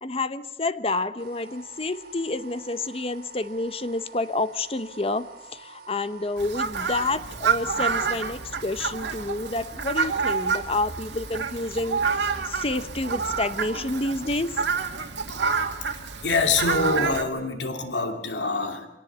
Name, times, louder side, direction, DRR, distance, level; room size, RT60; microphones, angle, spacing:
voice 1, 0.0-14.6, left 2 dB, 35° left, 13 dB, 0.8 m, -29 dB
sound 1, 1.2-14.6, right 4 dB, 60° right, 6.9 m, -48 dB
Fowl, 6.4-17.2, right 5 dB, 90° right, 2.2 m, -28 dB
voice 2, 16.2-18.9, left 3 dB, 85° left, 5 dB, 2.6 m, -25 dB
25.5 x 18.0 x 8.1 m, 0.99 s
head